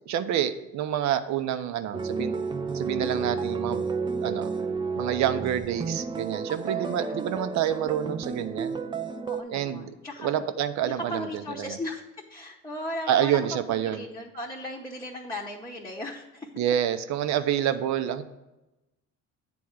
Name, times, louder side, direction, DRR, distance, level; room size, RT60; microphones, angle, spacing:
voice 1, 0.1-2.4 2.7-3.8 4.2-4.5 5.0-8.8 9.5-11.8 13.1-14.1 16.6-18.2, right 10 dB, 70° right, 11 dB, 0.7 m, -28 dB
sound 1, 1.9-9.4, right 5 dB, 15° right, 0.4 m, -31 dB
voice 2, 6.6-7.1 9.3-10.4 10.8-12.0 12.3-13.4 13.7-16.5, left 1 dB, 10° left, -3 dB, 0.8 m, -37 dB
8.6 x 3.5 x 6.3 m, 1.0 s
cardioid pair, 110°, 29 cm